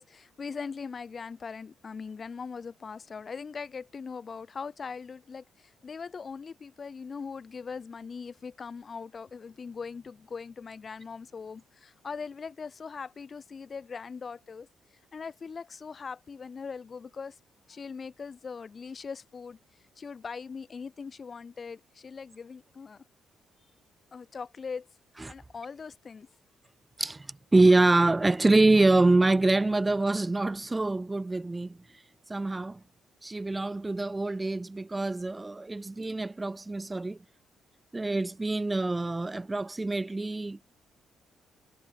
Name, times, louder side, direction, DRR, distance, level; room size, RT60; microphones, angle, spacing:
voice 1, 0.0-14.7 15.1-17.4 17.7-19.6 20.0-23.0 24.1-24.9 25.3-26.3, left 5 dB, 40° left, 1.2 m, -40 dB
voice 2, 27.5-31.8 32.3-32.8 33.2-37.2 37.9-40.6, right 2 dB, 15° right, 0.6 m, -25 dB
cardioid pair, 90°, 0 cm